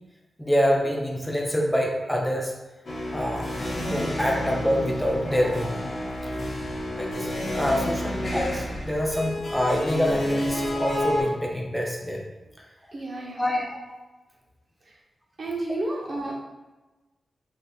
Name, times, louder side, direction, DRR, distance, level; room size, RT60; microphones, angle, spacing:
voice 1, 0.4-2.6 3.1-3.6 3.9-5.8 6.2-6.5 7.0-7.3 7.5-12.2 13.4-13.8, equal, 5° left, -1 dB, 0.4 m, -26 dB
sound 1, 2.9-11.2, left 1 dB, 50° left, 0.7 m, -30 dB
voice 2, 12.9-13.5 15.4-16.4, right 2 dB, 50° right, -3 dB, 0.6 m, -31 dB
3.3 x 2.5 x 2.6 m, 1.1 s
wide cardioid pair, 115°, 0 cm